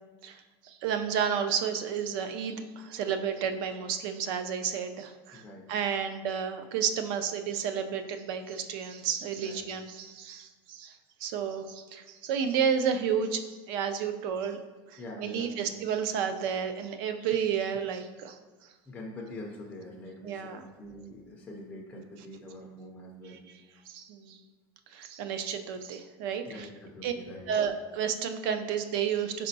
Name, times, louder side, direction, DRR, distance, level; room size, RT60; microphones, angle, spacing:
voice 1, 0.2-5.4 5.7-11.0 11.2-13.4 13.7-14.6 14.9-18.4 20.2-20.7 23.9-24.4 24.9-26.7 27.0-27.1 27.5-29.5, right 7 dB, 60° right, 8 dB, 0.4 m, -31 dB
voice 2, 5.3-5.7 9.4-9.7 15.0-15.9 18.9-23.4 26.4-27.5, left 1 dB, 10° left, -2 dB, 0.4 m, -44 dB
4.3 x 4.1 x 2.6 m, 1.3 s
cardioid pair, 175°, 13 cm